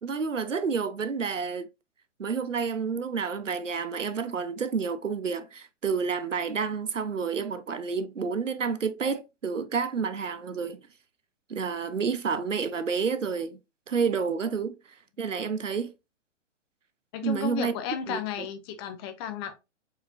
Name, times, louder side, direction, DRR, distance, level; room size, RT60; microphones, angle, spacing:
voice 1, 0.0-1.7 2.2-10.8 11.5-13.6 13.9-14.8 15.2-15.9 17.2-17.7 18.1-18.2, right 5 dB, 80° right, 0.7 m, -29 dB
voice 2, 17.1-19.6, left 8 dB, 20° left, 0.6 m, -34 dB
4.7 x 4.4 x 2.4 m
figure-of-eight pair, 115°, 37 cm